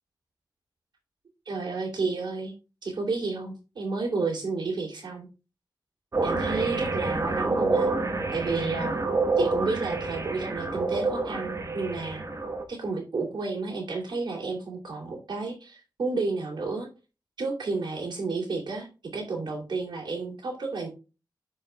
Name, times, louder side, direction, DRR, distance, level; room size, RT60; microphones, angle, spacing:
voice 1, 1.5-2.5 2.8-5.3 6.2-7.9 8.3-9.0 9.4-12.2 12.7-16.9 17.4-18.9 19.1-20.9, right 3 dB, 90° right, 1 dB, 2.8 m, -31 dB
sound 1, 6.1-12.6, right 3 dB, 45° right, 1.2 m, -28 dB
13.5 x 4.9 x 2.2 m, 0.31 s
wide cardioid pair, 120°, 7 cm